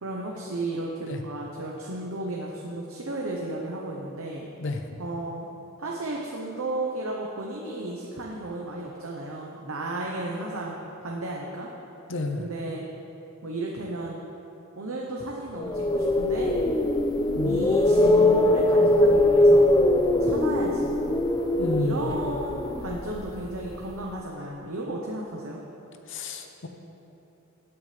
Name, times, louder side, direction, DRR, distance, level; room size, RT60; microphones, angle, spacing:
voice 1, 0.0-4.5 5.0-5.5 5.8-11.7 12.4-12.8 13.4-14.2 14.8-16.5 17.4-19.7 20.2-20.9 21.8-25.6, right 2 dB, 75° right, -2 dB, 0.9 m, -34 dB
voice 2, 12.1-12.5 17.4-17.7 21.6-22.1 26.1-26.7, left 2 dB, 60° left, 5 dB, 0.8 m, -30 dB
sound 1, 15.6-23.7, left 1 dB, 20° left, 0.4 m, -21 dB
16.5 x 7.1 x 3.3 m, 2.9 s
head